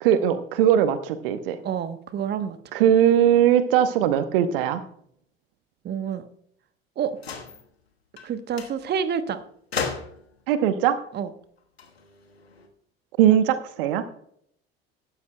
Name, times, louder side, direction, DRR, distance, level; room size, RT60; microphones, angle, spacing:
voice 1, 0.0-1.6 2.7-4.8 10.5-11.0 13.2-14.0, right 10 dB, 60° right, 12 dB, 1.0 m, -20 dB
voice 2, 1.6-2.6 5.8-6.3 7.0-7.2 8.2-9.5 11.1-11.3, right 7 dB, 35° right, 12 dB, 1.0 m, -28 dB
sound 1, 7.2-7.6 8.2-8.3 8.6-8.8 9.7-10.4 11.6-12.7, left 5 dB, 80° left, 1.4 m, -34 dB
16.5 x 12.5 x 2.2 m, 0.67 s
figure-of-eight pair, 60°, 31 cm